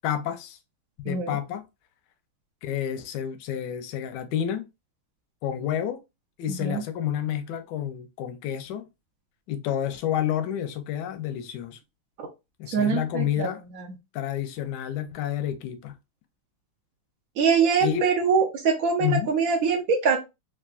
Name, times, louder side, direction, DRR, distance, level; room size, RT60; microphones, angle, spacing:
voice 1, 0.0-0.6 1.0-1.6 2.6-4.7 5.4-6.0 6.4-8.9 9.5-11.8 12.6-13.6 14.1-15.9 17.8-18.0 19.0-19.3, left 10 dB, 75° left, 1.0 m, -29 dB
voice 2, 1.1-1.4 6.5-6.8 12.2-12.3 12.7-13.5 17.4-20.2, right 5 dB, 85° right, 0.7 m, -23 dB
3.6 x 2.4 x 2.4 m
omnidirectional pair, 2.3 m